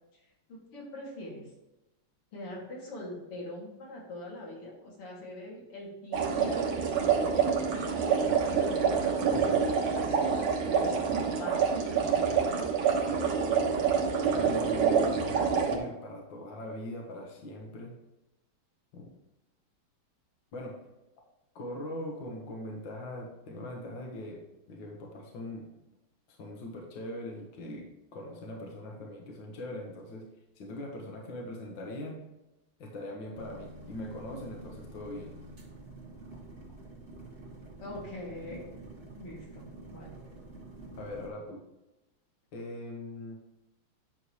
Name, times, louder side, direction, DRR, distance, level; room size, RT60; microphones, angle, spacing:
voice 1, 0.5-1.5 2.3-6.8 8.1-12.6 37.8-38.6 39.2-40.1, left 1 dB, 90° left, -4 dB, 3.7 m, -44 dB
sound 1, 6.1-15.8, right 6 dB, 75° right, 2.0 m, -27 dB
voice 2, 14.4-18.0 18.9-19.1 20.5-20.8 21.6-25.7 26.3-30.3 30.6-32.2 32.8-35.3 41.0-41.6 42.5-43.4, left 1 dB, 60° left, 0 dB, 1.9 m, -41 dB
sound 2, 33.3-41.3, right 2 dB, 30° right, 1.8 m, -48 dB
9.7 x 6.6 x 3.2 m, 0.96 s
omnidirectional pair, 2.4 m